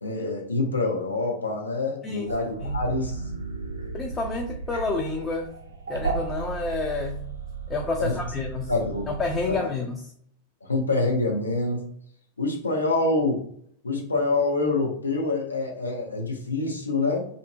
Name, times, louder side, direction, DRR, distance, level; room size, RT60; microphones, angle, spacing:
voice 1, 0.0-3.2 8.0-8.1 8.7-9.1 9.5-9.7 10.6-11.8 12.4-13.4 13.8-17.3, left 3 dB, 80° left, 0 dB, 0.6 m, -26 dB
sound 1, 2.3-9.6, right 4 dB, 70° right, 0.4 m, -34 dB
voice 2, 3.9-5.6 5.9-7.2 7.7-8.7 9.1-10.1, left 3 dB, 20° left, 1 dB, 0.4 m, -29 dB
2.7 x 2.6 x 2.2 m, 0.65 s
figure-of-eight pair, 90°, 0 cm